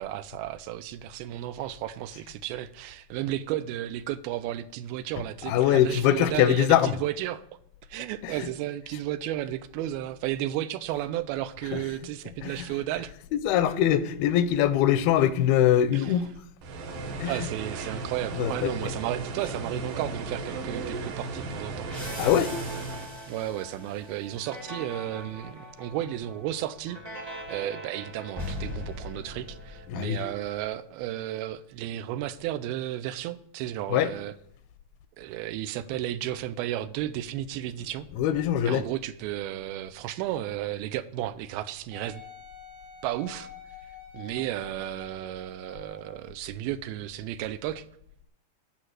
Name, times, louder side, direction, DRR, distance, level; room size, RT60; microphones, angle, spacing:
voice 1, 0.0-7.4 7.9-13.1 15.9-16.1 17.2-21.9 23.3-34.3 35.2-38.1 38.6-42.2 43.0-43.5 44.1-47.9, right 13 dB, 85° right, 2.5 m, -33 dB
voice 2, 5.5-6.9 8.2-8.3 11.7-11.8 12.4-12.7 13.3-16.3 16.9-17.5 18.3-18.7 22.2-22.5 29.9-30.2 33.9-34.1 38.2-38.8, left 11 dB, 85° left, 2.5 m, -23 dB
sound 1, 16.6-23.1, right 3 dB, 65° right, 2.6 m, -35 dB
sound 2, 21.9-30.3, left 1 dB, 15° right, 1.1 m, -40 dB
Wind instrument woodwind instrument, 41.9-46.2 46.9-47.0, left 7 dB, 45° right, 2.1 m, -47 dB
11.0 x 5.9 x 6.4 m
omnidirectional pair, 4.4 m